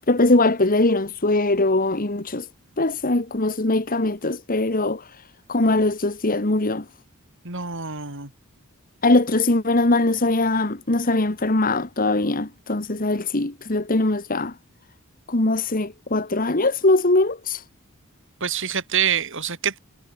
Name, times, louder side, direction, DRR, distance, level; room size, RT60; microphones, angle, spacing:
voice 1, 0.1-2.5 2.8-5.2 5.5-6.8 9.0-14.5 15.3-17.6, left 2 dB, 40° left, 1.6 m, -21 dB
voice 2, 7.4-8.3 18.4-19.8, right 8 dB, 60° right, 5.0 m, -26 dB
head